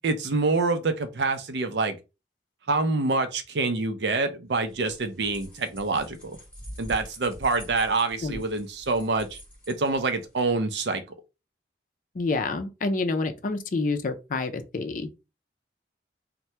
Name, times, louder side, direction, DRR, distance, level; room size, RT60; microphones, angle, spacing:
voice 1, 0.0-2.0 2.7-6.4 6.8-9.4 9.7-11.0, right 3 dB, 70° right, 0.5 m, -26 dB
sound 1, 4.5-10.5, equal, 5° left, 1.5 m, -45 dB
voice 2, 12.2-15.1, left 3 dB, 45° left, 0.4 m, -28 dB
2.8 x 2.2 x 3.2 m
head